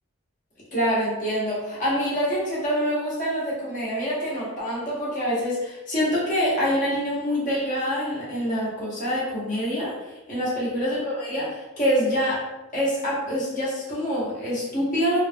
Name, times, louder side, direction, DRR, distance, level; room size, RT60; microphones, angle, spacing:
voice 1, 0.7-9.9 10.3-12.5 12.7-15.2, equal, 40° left, -7 dB, 1.1 m, -26 dB
3.2 x 2.7 x 2.2 m, 1.0 s
head